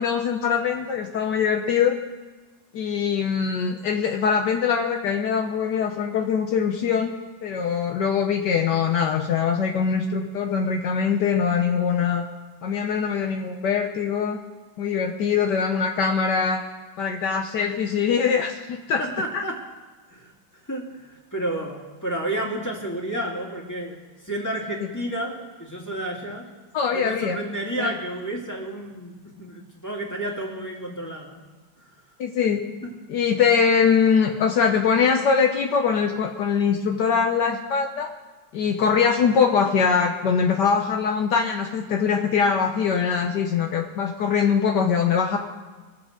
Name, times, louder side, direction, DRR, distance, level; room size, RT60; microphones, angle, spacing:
voice 1, 0.0-2.0 2.7-7.1 7.4-12.2 12.6-14.4 14.8-16.6 17.0-19.0 26.7-27.4 27.8-27.9 32.2-32.6 33.1-38.1 38.5-45.4, left 6 dB, 70° left, 3 dB, 1.4 m, -22 dB
voice 2, 19.0-19.6 20.1-20.3 20.7-24.0 24.2-25.3 25.6-26.5 26.9-31.4 32.8-32.9, right 1 dB, 10° left, -2 dB, 2.1 m, -31 dB
22.5 x 7.7 x 5.0 m, 1.3 s
omnidirectional pair, 2.0 m